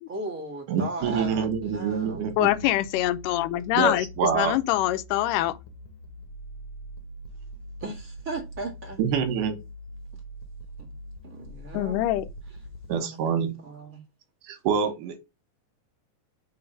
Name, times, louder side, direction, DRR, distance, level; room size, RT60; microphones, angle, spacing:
voice 1, 0.1-2.2 7.8-9.0 11.2-12.2 13.0-13.2 13.6-14.0, right 2 dB, 30° right, 1.8 m, -37 dB
voice 2, 0.7-2.5 3.8-4.5 9.0-9.6 12.9-13.6 14.5-15.2, right 6 dB, 80° right, 2.7 m, -26 dB
sound 1, 1.0-12.9, equal, 60° left, 1.6 m, -43 dB
voice 3, 2.4-4.1 4.3-5.6 11.7-12.3, left 14 dB, 90° left, 2.2 m, -24 dB
5.5 x 4.1 x 5.5 m
omnidirectional pair, 3.7 m